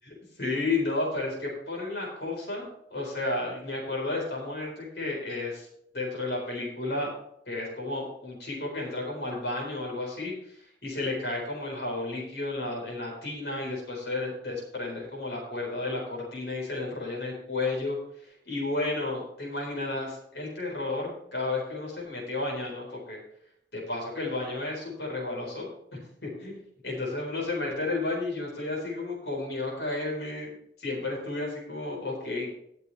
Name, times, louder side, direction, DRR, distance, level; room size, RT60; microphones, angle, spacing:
voice 1, 0.0-5.7 5.9-7.1 7.5-10.6 10.8-18.0 18.5-23.2 23.7-32.5, left 2 dB, 70° left, -2 dB, 4.2 m, -32 dB
18.5 x 6.8 x 3.3 m, 0.73 s
head